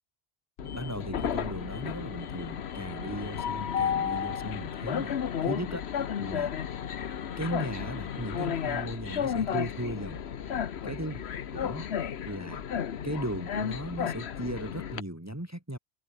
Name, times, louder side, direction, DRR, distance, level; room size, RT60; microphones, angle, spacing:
Train, 0.6-15.0, left 8 dB, 85° left, 1.2 m, -33 dB
voice 1, 0.6-5.1 5.4-5.8 6.2-6.5 7.4-10.2 10.8-11.2 11.5-11.9 12.3-12.6 13.0-15.8, right 1 dB, 15° right, 2.1 m, -37 dB
omnidirectional pair, 1.1 m